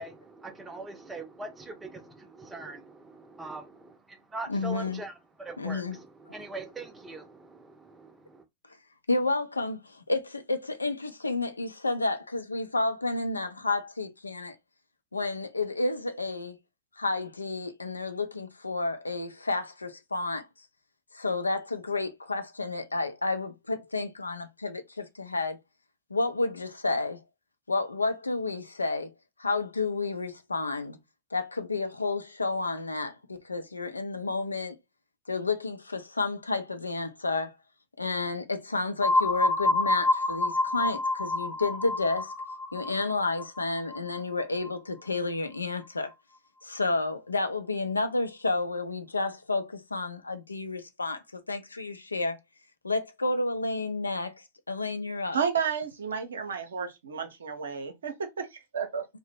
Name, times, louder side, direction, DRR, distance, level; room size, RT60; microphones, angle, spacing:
voice 1, 0.0-8.4, right 3 dB, 10° right, 0.6 m, -42 dB
voice 2, 4.5-5.0 5.6-6.0 9.1-14.6 15.1-16.6 17.0-20.4 21.1-25.6 26.1-27.2 27.7-29.1 29.4-31.0 31.3-34.8 35.3-37.5 38.0-42.3 42.7-46.1 46.6-52.4 52.8-55.4, left 3 dB, 80° left, 0.4 m, -31 dB
sound 1, 39.0-44.7, left 2 dB, 30° left, 0.7 m, -28 dB
voice 3, 55.3-59.1, right 6 dB, 65° right, 0.6 m, -32 dB
2.7 x 2.1 x 3.4 m
figure-of-eight pair, 90°, 0 cm